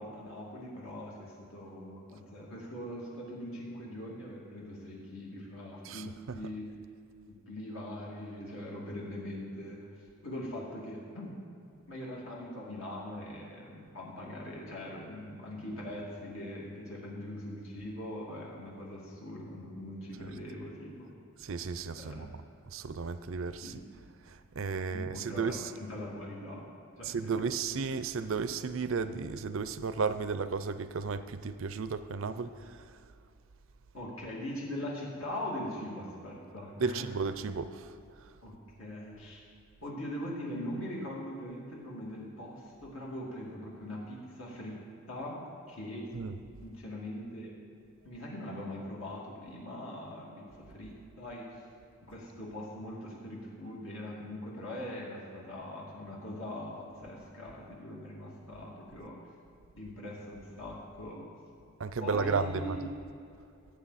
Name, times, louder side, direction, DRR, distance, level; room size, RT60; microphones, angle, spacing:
voice 1, 0.0-6.7 7.3-9.9 10.2-11.4 11.9-21.1 22.0-22.3 23.6-23.8 24.6-26.7 27.0-27.4 33.9-37.1 38.4-39.4 39.8-45.4 45.7-46.2 46.6-47.5 48.0-51.6 52.0-59.2 59.8-61.3 62.0-62.8, left 1 dB, 70° left, -4 dB, 2.5 m, -41 dB
voice 2, 21.4-22.3 22.7-23.7 24.6-25.6 27.0-32.8 36.8-37.9 46.1-46.3 61.8-62.8, right 5 dB, 65° right, 12 dB, 0.5 m, -33 dB
17.0 x 8.2 x 4.2 m, 2.6 s
head